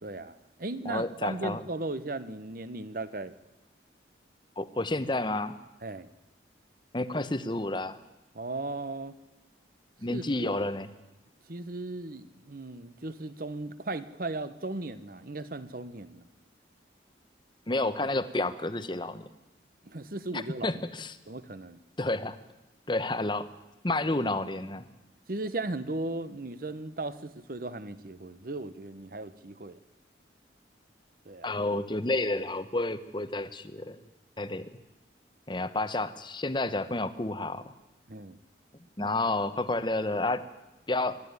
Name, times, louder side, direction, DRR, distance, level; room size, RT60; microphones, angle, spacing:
voice 1, 0.0-3.3 5.8-6.1 8.3-9.2 10.1-10.5 11.5-16.3 19.8-20.7 21.3-21.8 25.3-29.8 31.3-31.5 38.1-38.4 39.0-39.1, right 2 dB, 50° right, 14 dB, 1.0 m, -37 dB
voice 2, 0.8-1.6 4.6-5.5 6.9-8.0 10.0-10.9 17.7-19.3 20.3-21.2 22.0-22.4 22.9-23.5 23.8-24.9 31.4-34.0 34.4-34.7 35.5-37.7 39.0-40.4 40.9-41.2, left 2 dB, 25° left, 12 dB, 0.9 m, -30 dB
26.0 x 11.0 x 9.6 m, 1.0 s
head